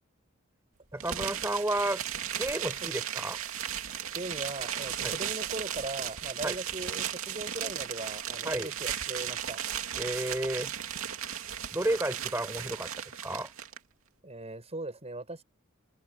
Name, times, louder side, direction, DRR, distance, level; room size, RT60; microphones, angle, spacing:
voice 1, 0.9-2.0 2.4-3.4 5.0-5.1 6.4-6.5 8.4-8.7 10.0-10.7 11.7-12.9 13.2-13.5, right 1 dB, 15° right, 5.1 m, -31 dB
sound 1, 1.0-13.8, right 9 dB, 90° right, 2.6 m, -36 dB
voice 2, 4.1-9.6 14.2-15.4, right 2 dB, 30° right, 6.8 m, -39 dB
head